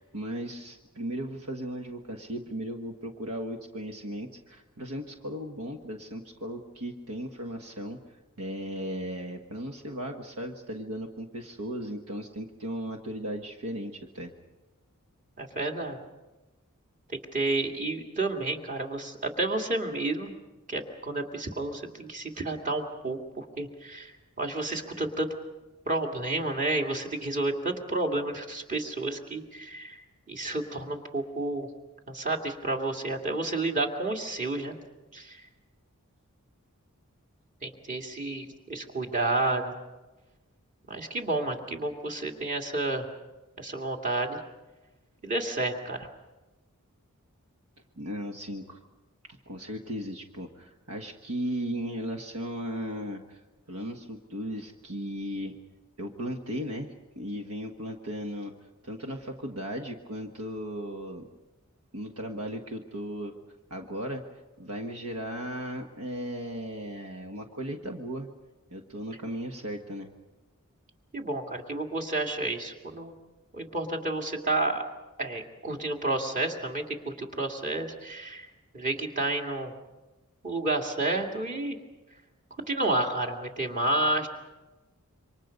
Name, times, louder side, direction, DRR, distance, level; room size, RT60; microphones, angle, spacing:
voice 1, 0.0-8.0 8.4-14.3 48.0-48.8 49.5-53.4 53.7-55.5 56.0-58.5 58.8-61.3 61.9-63.3 63.7-64.2 64.6-68.3 68.7-70.1, equal, 85° right, 3 dB, 1.5 m, -36 dB
voice 2, 15.4-16.0 17.1-20.3 20.7-25.3 25.9-30.0 30.3-31.7 32.1-34.7 35.1-35.4 37.6-39.7 40.9-43.1 43.6-44.4 45.2-46.1 71.1-73.1 73.5-74.8 75.2-78.5 78.7-79.7 80.4-81.8 82.7-84.3, right 2 dB, 35° right, 3 dB, 2.4 m, -30 dB
28.0 x 24.5 x 5.3 m, 1.1 s
head